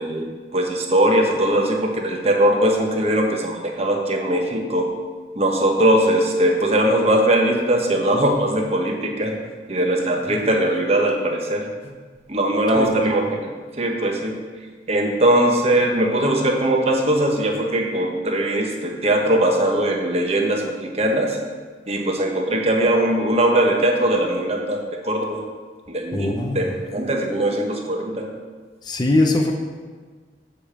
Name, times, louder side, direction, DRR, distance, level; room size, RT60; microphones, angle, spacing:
voice 1, 0.0-5.0 5.4-9.4 9.7-11.7 12.3-13.5 13.8-14.4 14.9-21.4 21.9-25.4 25.9-28.3, right 1 dB, 35° right, 2 dB, 1.0 m, -20 dB
voice 2, 26.1-26.6 28.9-29.5, left 2 dB, 25° left, 2 dB, 0.6 m, -20 dB
7.3 x 5.0 x 7.2 m, 1.5 s
head